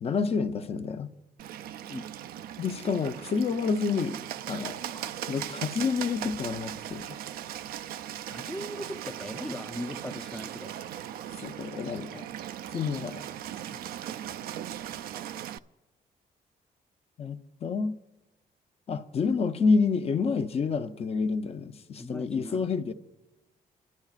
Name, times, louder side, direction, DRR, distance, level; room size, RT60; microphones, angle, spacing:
voice 1, 0.0-1.1 2.6-4.2 4.5-7.2 11.4-12.3 12.7-13.3 17.2-18.0 18.9-22.9, left 5 dB, 40° left, 0.7 m, -29 dB
Bird, 1.4-15.6, right 11 dB, 80° right, 0.4 m, -39 dB
voice 2, 8.3-10.7 13.7-13.8 22.0-22.7, left 1 dB, 5° left, 0.5 m, -39 dB
29.0 x 12.0 x 2.4 m
cardioid pair, 120°, 15 cm